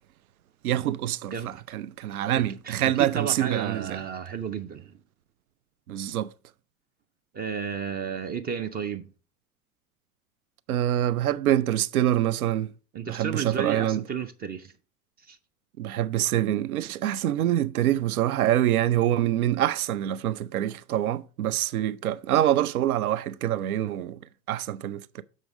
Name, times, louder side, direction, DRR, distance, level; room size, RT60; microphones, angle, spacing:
voice 1, 0.6-1.3 1.7-4.0 5.9-6.3 10.7-12.7 13.1-14.0 15.8-24.2 24.5-25.2, right 12 dB, 80° right, 0.5 m, -25 dB
voice 2, 2.3-5.0 7.3-9.1 12.9-14.7 15.2-15.4, right 7 dB, 25° right, 0.4 m, -32 dB
6.4 x 5.1 x 4.8 m
figure-of-eight pair, 75°, 43 cm